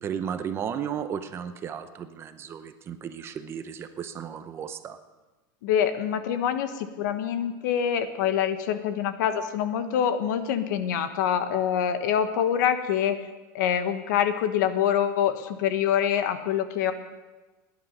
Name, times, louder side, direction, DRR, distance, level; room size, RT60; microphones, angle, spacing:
voice 1, 0.0-5.0, right 8 dB, 25° right, 10 dB, 0.7 m, -34 dB
voice 2, 5.6-13.2 13.5-16.9, left 9 dB, 75° left, 9 dB, 1.2 m, -25 dB
17.5 x 10.5 x 5.4 m, 1.2 s
supercardioid pair, 160°, 10 cm